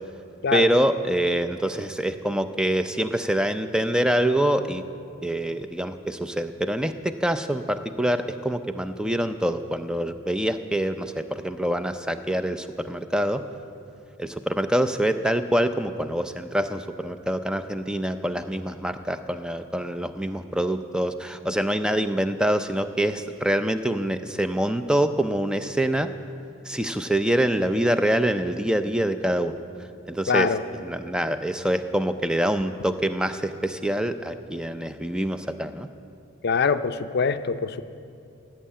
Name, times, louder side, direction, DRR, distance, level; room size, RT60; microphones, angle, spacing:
voice 1, 0.5-4.8 5.2-13.4 14.2-26.1 26.6-29.6 30.1-35.9, right 1 dB, 5° right, 9 dB, 0.4 m, -25 dB
voice 2, 30.3-30.6 36.4-37.8, left 5 dB, 50° left, 10 dB, 0.5 m, -23 dB
16.5 x 7.4 x 8.7 m, 2.5 s
head